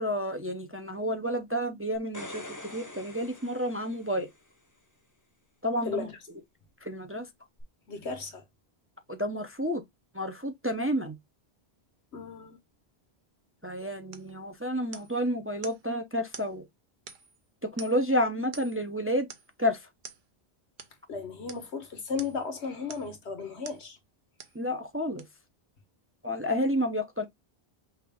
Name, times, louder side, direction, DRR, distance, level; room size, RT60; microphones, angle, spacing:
voice 1, 0.0-4.3 5.6-6.1 6.8-7.3 9.1-9.8 10.1-11.2 13.6-16.6 17.6-19.3 19.6-19.9 24.5-25.2 26.2-27.3, equal, 15° right, 0.6 m, -30 dB
sound 1, 1.9-4.5 7.6-7.7, left 1 dB, 20° left, 0.8 m, -44 dB
voice 2, 7.9-8.4 12.1-12.6 21.1-24.0, left 5 dB, 80° left, 1.5 m, -35 dB
sound 2, 14.1-14.3 14.9-15.2 15.6-15.8 16.3-16.5 17.1-17.4 17.8-18.1 18.5-18.8 19.3-19.5 20.0-20.2 20.8-21.0 21.5-21.7 22.2-22.5 22.9-23.2 23.6-23.9 24.4-24.6 25.2-25.3, right 6 dB, 55° right, 0.9 m, -47 dB
5.7 x 2.5 x 3.4 m
omnidirectional pair, 1.1 m